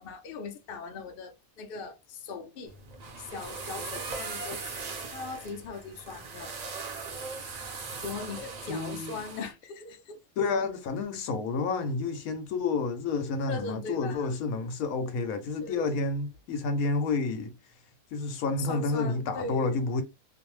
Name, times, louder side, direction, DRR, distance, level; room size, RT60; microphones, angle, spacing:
voice 1, 0.0-2.7 3.2-6.5 8.0-10.2 13.5-14.3 15.6-15.9 18.6-19.8, left 4 dB, 60° left, 0.6 m, -39 dB
sound 1, 2.7-9.5, right 4 dB, 65° right, 0.4 m, -39 dB
voice 2, 8.7-9.2 10.4-17.5 18.1-20.0, left 3 dB, 85° left, 1.1 m, -30 dB
2.6 x 2.1 x 3.0 m
omnidirectional pair, 1.5 m